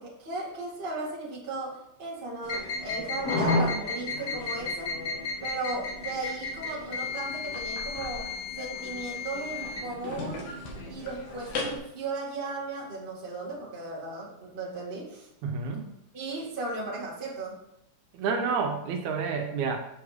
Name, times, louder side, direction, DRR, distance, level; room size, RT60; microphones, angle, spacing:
voice 1, 0.0-4.9 5.4-10.5 10.9-15.3 16.1-17.6, right 2 dB, 20° right, -5 dB, 1.6 m, -36 dB
sound 1, 2.4-11.8, left 3 dB, 60° left, 2.4 m, -33 dB
voice 2, 15.4-15.9 18.1-19.8, right 5 dB, 80° right, 4 dB, 2.1 m, -29 dB
7.1 x 4.8 x 4.9 m, 0.84 s
omnidirectional pair, 3.4 m